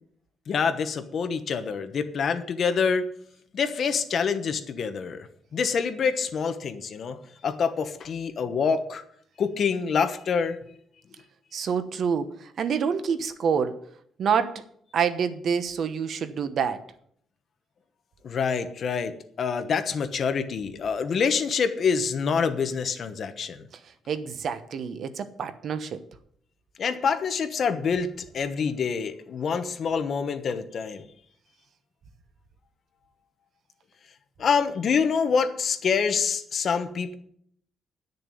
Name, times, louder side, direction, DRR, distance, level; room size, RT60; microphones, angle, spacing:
voice 1, 0.5-3.1 3.5-5.3 5.5-9.0 9.4-10.6 18.2-23.6 26.8-31.0 34.4-37.2, left 6 dB, 45° left, 9 dB, 1.2 m, -26 dB
voice 2, 11.5-13.8 14.2-14.6 14.9-16.8 24.1-26.0, right 6 dB, 50° right, 11 dB, 1.0 m, -27 dB
10.5 x 6.8 x 9.2 m, 0.66 s
cardioid pair, 155°, 0 cm